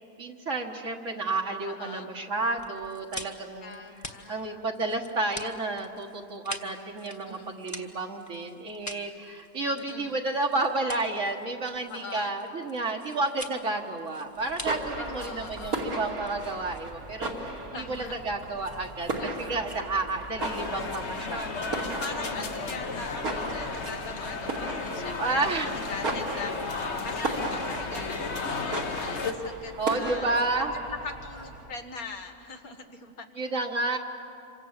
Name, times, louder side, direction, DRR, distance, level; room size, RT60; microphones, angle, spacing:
voice 1, 0.0-3.7 4.3-19.1 19.5-21.8 25.2-25.8 29.8-30.8 33.4-34.0, right 2 dB, 60° right, 1 dB, 1.8 m, -31 dB
voice 2, 1.6-2.1 3.6-4.7 7.2-7.5 9.8-10.2 11.9-12.3 15.0-15.9 17.7-18.2 19.2-19.6 20.0-20.2 21.3-33.3, left 4 dB, 80° left, 6 dB, 2.0 m, -42 dB
sound 1, 2.6-17.2, left 1 dB, 10° left, 1.4 m, -45 dB
sound 2, 14.4-31.7, right 2 dB, 80° right, 3.0 m, -36 dB
sound 3, 20.4-29.3, left 4 dB, 50° left, 1.4 m, -34 dB
27.0 x 24.5 x 7.4 m, 2.6 s
omnidirectional pair, 1.5 m